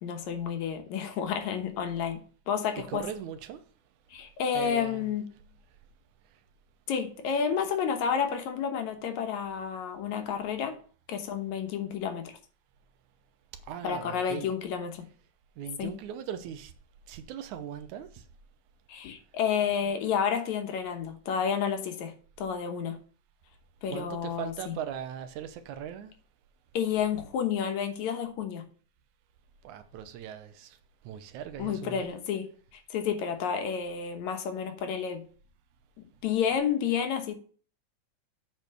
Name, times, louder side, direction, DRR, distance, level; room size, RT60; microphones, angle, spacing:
voice 1, 0.0-3.0 4.1-5.2 6.9-10.8 11.1-12.3 13.8-15.1 15.8-15.9 18.9-23.0 23.8-24.8 26.7-28.7 31.6-35.2 36.0-37.3, left 7 dB, 75° left, 2.4 m, -30 dB
voice 2, 2.7-3.6 4.5-5.1 13.6-14.5 15.6-16.7 17.1-18.2 23.9-26.1 29.6-30.8 31.0-32.1, right 9 dB, 85° right, 2.2 m, -39 dB
8.5 x 4.5 x 6.7 m
omnidirectional pair, 3.4 m